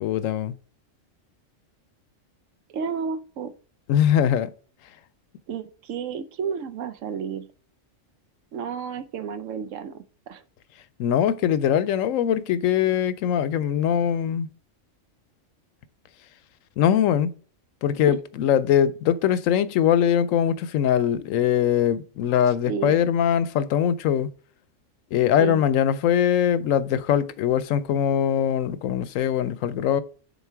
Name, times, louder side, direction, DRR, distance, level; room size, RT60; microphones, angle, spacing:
voice 1, 0.0-0.5 3.9-4.5 11.0-14.5 16.8-17.3 17.8-24.3 25.1-30.0, left 9 dB, 85° left, 1.0 m, -22 dB
voice 2, 2.7-3.5 5.5-7.5 8.5-10.4 18.1-18.2 22.7-22.9 25.4-25.6, right 6 dB, 75° right, 1.0 m, -31 dB
7.1 x 3.8 x 4.5 m
omnidirectional pair, 1.3 m